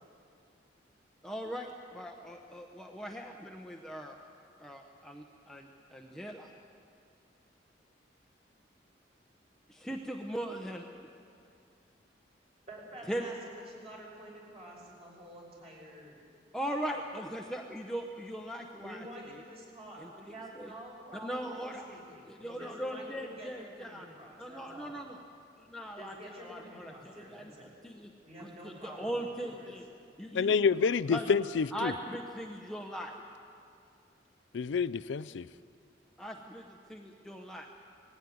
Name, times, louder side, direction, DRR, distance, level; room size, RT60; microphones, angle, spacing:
voice 1, 1.2-4.2 4.6-6.5 9.7-10.9 13.1-13.3 16.5-19.0 19.3-19.4 20.0-20.7 21.2-22.0 22.3-24.1 24.4-25.2 25.6-28.1 28.4-29.9 30.2-30.6 31.1-31.2 31.7-33.2 36.2-37.7, equal, 5° left, 1 dB, 0.9 m, -40 dB
voice 2, 12.7-16.1 18.8-25.0 26.0-27.7 28.2-29.7, right 1 dB, 35° right, -2 dB, 5.7 m, -48 dB
voice 3, 30.3-31.9 34.5-35.5, left 5 dB, 85° left, 15 dB, 0.4 m, -28 dB
20.0 x 15.5 x 9.4 m, 2.5 s
head